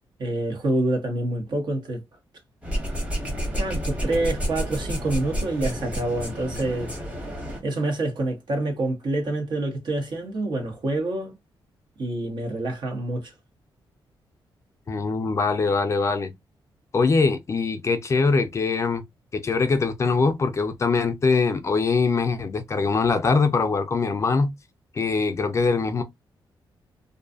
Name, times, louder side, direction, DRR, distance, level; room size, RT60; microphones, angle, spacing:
voice 1, 0.2-2.0 3.4-6.9 7.6-11.3 12.0-13.3, right 2 dB, 55° right, 1.0 m, -27 dB
sound 1, 2.6-7.6, equal, 15° right, 1.1 m, -30 dB
voice 2, 14.9-16.3 16.9-19.0 19.3-24.5 24.9-26.0, left 4 dB, 35° left, 0.4 m, -22 dB
2.5 x 2.3 x 2.4 m
wide cardioid pair, 130°, 9 cm